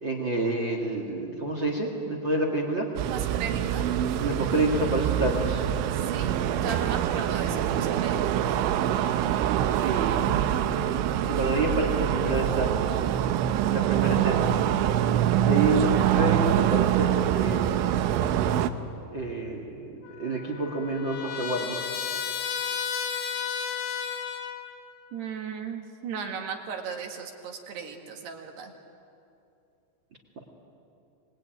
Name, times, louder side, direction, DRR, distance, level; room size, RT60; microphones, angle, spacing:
voice 1, 0.0-2.9 4.2-5.6 9.8-10.2 11.3-12.8 13.6-14.5 15.4-17.8 19.1-19.9 20.2-21.8, right 2 dB, 40° right, 2 dB, 1.8 m, -28 dB
sound 1, 3.0-18.7, right 10 dB, 90° right, 3.3 m, -25 dB
voice 2, 3.1-3.8 6.1-8.5 25.1-28.7, right 6 dB, 65° right, 3 dB, 3.6 m, -36 dB
Trumpet, 20.0-24.8, left 7 dB, 80° left, 4.1 m, -33 dB
26.5 x 20.5 x 9.2 m, 2.6 s
omnidirectional pair, 5.3 m